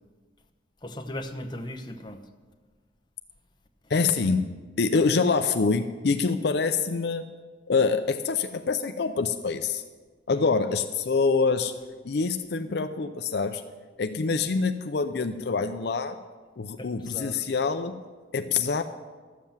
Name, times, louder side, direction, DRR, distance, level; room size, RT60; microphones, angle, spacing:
voice 1, 0.8-2.2 10.3-10.4 16.8-17.4, left 1 dB, 25° left, 5 dB, 0.8 m, -37 dB
voice 2, 3.9-7.3 7.7-9.8 10.3-11.7 12.0-13.6 14.0-16.2 16.6-18.0 18.3-18.8, left 4 dB, 60° left, 8 dB, 0.5 m, -25 dB
13.0 x 7.5 x 7.2 m, 1.4 s
head